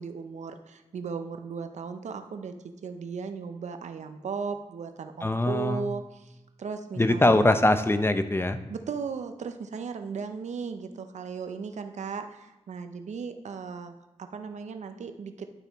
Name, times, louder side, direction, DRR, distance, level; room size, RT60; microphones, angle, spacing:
voice 1, 0.0-2.5 2.8-7.5 8.7-13.9 14.2-15.5, right 5 dB, 80° right, 7 dB, 0.6 m, -36 dB
voice 2, 5.2-5.8 7.0-8.6, left 1 dB, 20° left, 10 dB, 0.6 m, -22 dB
11.0 x 6.7 x 3.1 m, 0.97 s
cardioid pair, 55°, 12 cm